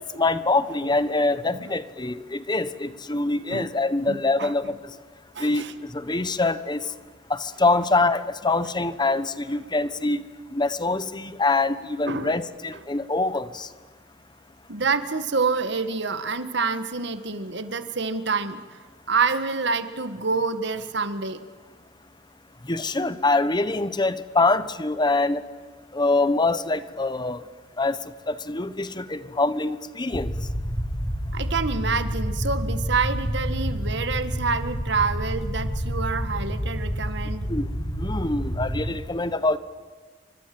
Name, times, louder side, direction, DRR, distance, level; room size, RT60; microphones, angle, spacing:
voice 1, 0.2-4.7 5.4-5.6 5.9-6.8 7.3-10.2 10.5-13.7 22.7-25.4 25.9-27.4 27.8-28.0 28.3-30.3 37.5-37.7 38.0-39.6, left 3 dB, 25° left, 13 dB, 1.2 m, -24 dB
voice 2, 4.1-4.5 5.3-5.7 12.1-12.3 14.7-21.4 31.3-37.5, right 4 dB, 65° right, 10 dB, 1.7 m, -27 dB
sound 1, 30.1-38.9, equal, 40° left, 3.9 m, -29 dB
29.5 x 25.0 x 7.9 m, 1.4 s
head